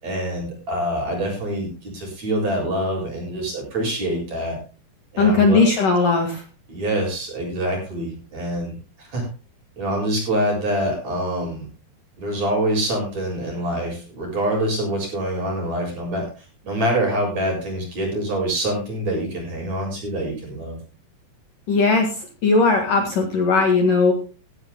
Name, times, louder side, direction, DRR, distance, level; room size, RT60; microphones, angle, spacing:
voice 1, 0.0-4.6 5.1-5.6 6.7-8.7 9.0-9.3 9.8-11.7 12.2-20.8, right 1 dB, 35° right, 1 dB, 7.9 m, -25 dB
voice 2, 5.2-6.4 21.7-22.1 22.4-24.1, left 3 dB, 55° left, 3 dB, 3.0 m, -18 dB
17.5 x 16.0 x 2.2 m, 0.34 s
omnidirectional pair, 5.3 m